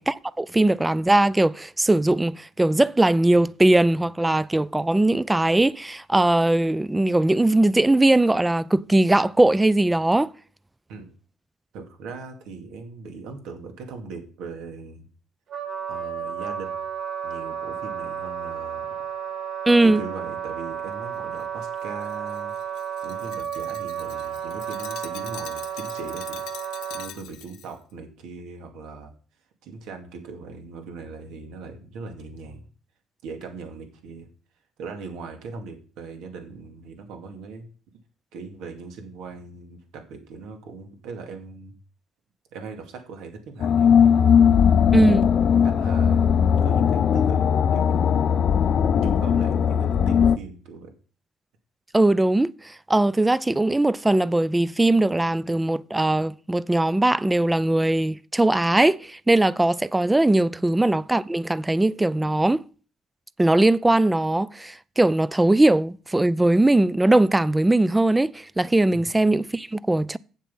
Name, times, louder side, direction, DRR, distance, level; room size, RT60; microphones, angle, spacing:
voice 1, 0.0-10.3 19.7-20.0 44.9-45.3 51.9-52.5 52.9-62.6 63.4-70.2, right 2 dB, 10° right, 0.4 m, -20 dB
voice 2, 11.7-15.1 15.9-16.8 17.2-18.9 19.8-22.5 23.0-26.4 26.9-29.1 29.6-32.7 33.2-34.3 34.8-37.7 38.3-41.7 42.5-44.7 45.6-46.3 46.6-48.1 49.0-50.9 60.5-60.8 68.9-69.1, right 4 dB, 85° right, 2.2 m, -39 dB
Wind instrument woodwind instrument, 15.5-27.1, right 8 dB, 50° right, 1.9 m, -32 dB
Glass, 21.4-27.7, left 11 dB, 80° left, 1.0 m, -44 dB
sound 1, 43.6-50.4, left 7 dB, 50° left, 0.5 m, -19 dB
8.4 x 7.5 x 5.6 m
cardioid pair, 115°, 0 cm